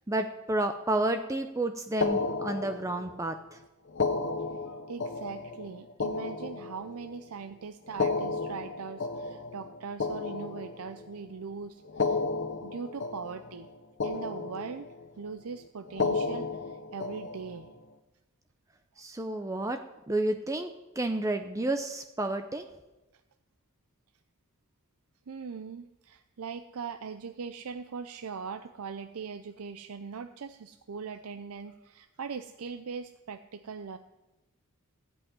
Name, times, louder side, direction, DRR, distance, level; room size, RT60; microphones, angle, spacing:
voice 1, 0.0-3.6 19.0-19.8 20.1-20.7 21.0-22.7, right 2 dB, 15° right, 7 dB, 0.5 m, -30 dB
sound 1, 2.0-3.2 3.9-7.2 7.9-11.2 11.9-13.7 14.0-15.1 15.9-17.7, left 4 dB, 55° left, 0.8 m, -33 dB
voice 2, 4.7-12.2 12.6-13.7 14.0-17.7 25.3-34.0, right 5 dB, 80° right, 9 dB, 0.5 m, -40 dB
15.5 x 5.5 x 9.7 m, 1.0 s
head